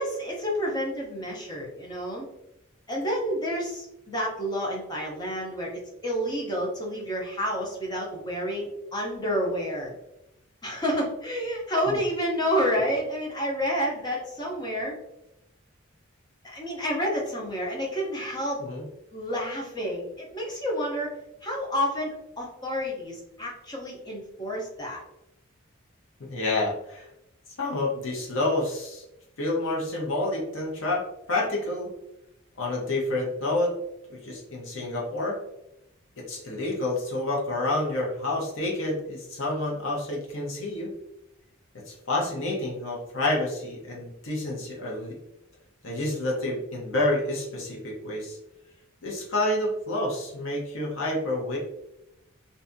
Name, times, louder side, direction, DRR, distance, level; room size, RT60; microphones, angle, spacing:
voice 1, 0.0-2.3 2.9-9.9 10.6-14.9 16.4-18.6 19.1-21.1 21.4-25.0, equal, 20° left, -2 dB, 0.6 m, -29 dB
voice 2, 26.3-27.1 27.6-29.0 29.4-31.0 31.3-31.9 32.6-33.7 34.1-35.4 36.2-40.9 41.9-45.2 45.8-48.4 49.0-51.6, left 2 dB, 75° left, -2 dB, 0.7 m, -28 dB
2.6 x 2.2 x 2.5 m, 0.85 s
head